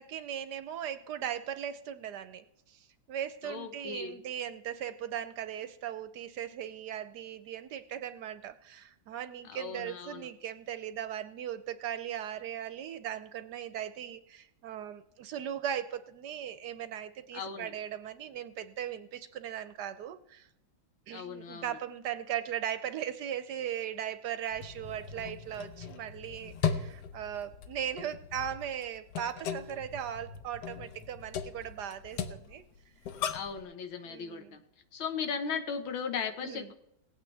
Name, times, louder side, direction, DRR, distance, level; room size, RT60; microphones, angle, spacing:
voice 1, 0.0-20.5 21.1-32.6 34.0-34.6 36.4-36.7, right 10 dB, 70° right, 12 dB, 1.0 m, -38 dB
voice 2, 3.4-4.1 9.6-10.2 17.3-17.7 21.1-21.7 33.3-34.4 34.9-36.7, left 6 dB, 90° left, 7 dB, 2.1 m, -37 dB
sound 1, 24.5-33.6, left 7 dB, 65° left, 1.4 m, -38 dB
19.0 x 8.8 x 3.3 m, 0.83 s
omnidirectional pair, 2.2 m